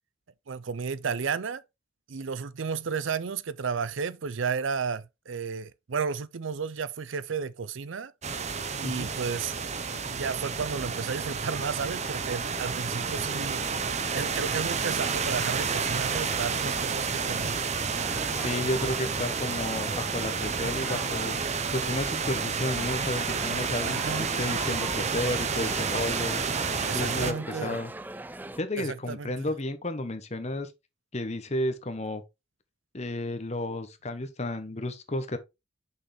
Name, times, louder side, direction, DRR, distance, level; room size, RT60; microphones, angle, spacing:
voice 1, 0.5-1.6 2.1-8.1 8.8-9.5 10.1-13.6 14.1-17.6 23.9-24.3 26.9-27.8 28.8-29.5, right 5 dB, 70° right, 0.5 m, -33 dB
sound 1, 8.2-27.3, right 5 dB, 35° right, 0.7 m, -30 dB
sound 2, 15.5-28.6, right 2 dB, 10° right, 0.3 m, -41 dB
voice 2, 18.3-26.4 26.9-27.3 27.6-27.9 28.6-30.7 31.1-32.2 32.9-35.4, left 1 dB, 35° left, 0.9 m, -32 dB
6.3 x 5.8 x 3.3 m
head